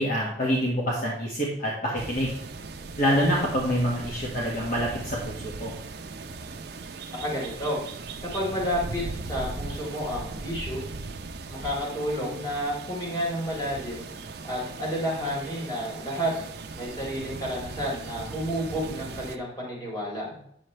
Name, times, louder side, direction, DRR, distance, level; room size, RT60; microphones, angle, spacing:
voice 1, 0.0-2.3 3.0-5.7, equal, 50° left, -4 dB, 1.7 m, -26 dB
sound 1, 2.0-19.4, right 3 dB, 65° right, 0.6 m, -38 dB
voice 2, 7.1-7.8 8.2-10.8 11.5-14.1 14.4-16.3 16.8-20.3, equal, 25° left, -5 dB, 3.8 m, -30 dB
8.9 x 7.4 x 3.3 m, 0.70 s
head